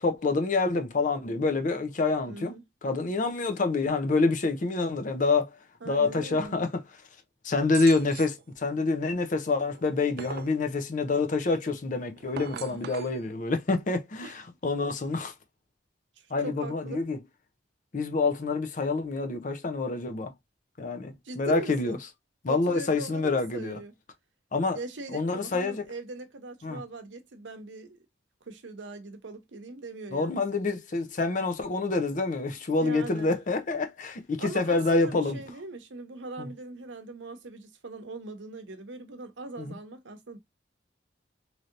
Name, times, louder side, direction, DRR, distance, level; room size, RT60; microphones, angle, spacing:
voice 1, 0.0-2.5 2.8-5.5 5.9-6.8 7.4-15.3 16.3-17.2 17.9-20.3 20.8-22.0 22.4-23.8 24.5-24.8 25.1-25.8 26.6-26.8 30.1-35.4 36.4-36.5 39.6-39.8, left 3 dB, 45° left, 0.5 m, -27 dB
voice 2, 2.3-2.6 5.8-6.6 12.5-12.9 14.2-14.4 16.4-17.1 21.2-22.0 22.5-23.9 24.7-28.0 28.5-30.4 32.8-33.3 34.4-40.4, right 3 dB, 90° right, 0.7 m, -40 dB
sound 1, 7.7-8.4 9.7-10.6 12.2-13.1, right 9 dB, 55° right, 0.3 m, -40 dB
3.2 x 2.7 x 2.5 m
head